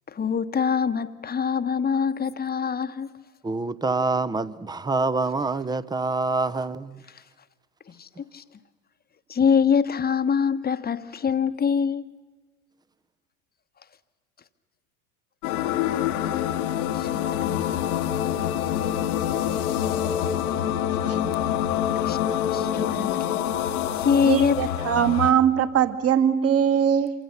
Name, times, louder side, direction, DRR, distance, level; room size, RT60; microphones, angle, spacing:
voice 1, 0.1-3.1 7.9-8.4 9.3-12.0 16.9-17.6 22.0-22.2 22.5-23.5 24.0-24.7, left 6 dB, 20° left, 1.1 m, -24 dB
voice 2, 3.4-7.0, right 3 dB, 10° right, 0.7 m, -26 dB
sound 1, 15.4-25.3, left 10 dB, 70° left, 1.5 m, -26 dB
voice 3, 24.2-27.1, right 8 dB, 30° right, 1.6 m, -21 dB
27.0 x 24.5 x 6.8 m
hypercardioid pair, 80°, 45 cm